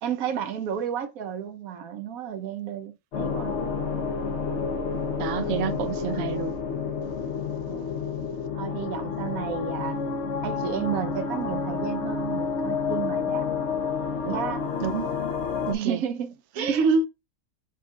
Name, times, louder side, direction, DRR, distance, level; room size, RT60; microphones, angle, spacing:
voice 1, 0.0-3.5 5.5-5.6 7.7-7.9 8.5-10.0 10.4-13.5 14.2-14.6 15.7-17.1, right 8 dB, 80° right, 1.2 m, -32 dB
sound 1, 3.1-15.7, left 5 dB, 60° left, 1.0 m, -29 dB
voice 2, 5.2-6.5 14.8-15.1 15.7-16.0 16.6-17.1, right 5 dB, 65° right, 0.8 m, -26 dB
5.4 x 2.5 x 3.6 m
omnidirectional pair, 1.5 m